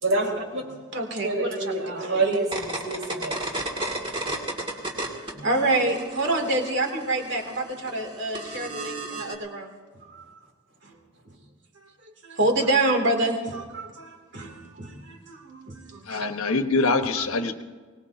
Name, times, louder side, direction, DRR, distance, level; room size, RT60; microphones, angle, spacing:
voice 1, 0.0-0.6 1.2-3.4, right 2 dB, 70° right, 0 dB, 4.1 m, -27 dB
voice 2, 0.9-2.4 3.8-4.4 5.3-9.7 10.1-10.2 10.8-10.9 12.2-16.3 17.2-17.3, right 2 dB, 55° right, 2 dB, 2.8 m, -27 dB
sound 1, 2.3-5.3 5.6-9.4, right 2 dB, 25° right, 2.3 m, -33 dB
voice 3, 16.1-17.6, left 3 dB, 85° left, 7 dB, 1.2 m, -24 dB
24.0 x 19.5 x 2.8 m, 1.5 s
head